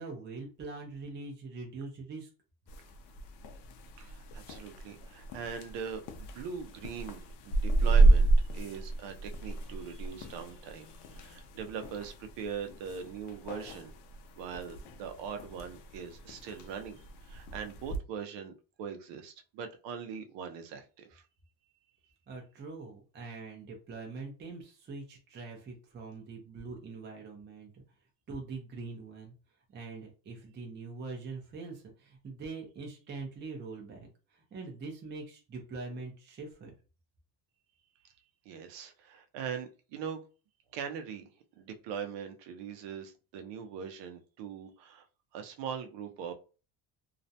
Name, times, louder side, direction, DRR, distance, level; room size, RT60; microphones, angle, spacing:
voice 1, 0.0-2.3 22.3-27.8 28.3-29.3 29.7-36.7, right 3 dB, 25° right, 1 dB, 0.5 m, -43 dB
sound 1, 2.7-18.0, right 2 dB, 65° left, 0.6 m, -31 dB
voice 2, 4.0-13.9 14.4-18.5 18.8-21.2 38.5-40.2 40.7-41.2 41.6-45.1 45.3-46.3, right 7 dB, 75° right, 7 dB, 0.7 m, -41 dB
2.4 x 2.1 x 2.7 m, 0.34 s
cardioid pair, 140°, 44 cm